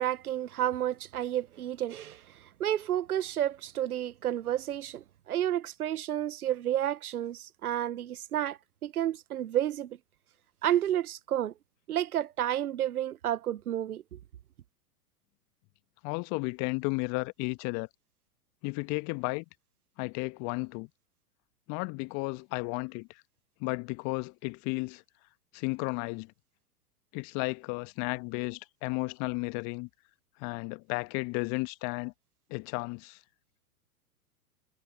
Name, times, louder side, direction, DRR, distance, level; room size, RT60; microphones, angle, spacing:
voice 1, 0.0-10.0 10.6-11.5 11.9-14.2, right 11 dB, 70° right, 0.9 m, -31 dB
voice 2, 16.0-17.9 18.6-19.4 20.0-20.9 21.7-23.1 23.6-25.0 25.5-26.3 27.1-29.9 30.4-32.1 32.5-33.2, left 29 dB, 35° left, 1.4 m, -33 dB
figure-of-eight pair, 105°, 45 cm